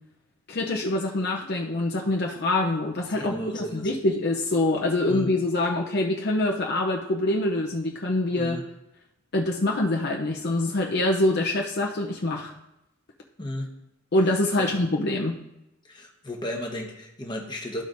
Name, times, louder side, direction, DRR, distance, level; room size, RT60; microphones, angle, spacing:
voice 1, 0.5-8.6 9.3-12.5 14.1-15.4, left 2 dB, 50° left, 0 dB, 0.6 m, -25 dB
voice 2, 3.1-3.9 5.1-5.3 8.4-8.6 13.4-13.7 14.6-14.7 15.9-17.8, left 1 dB, 20° left, 1 dB, 1.1 m, -34 dB
13.5 x 5.0 x 2.6 m, 0.91 s
head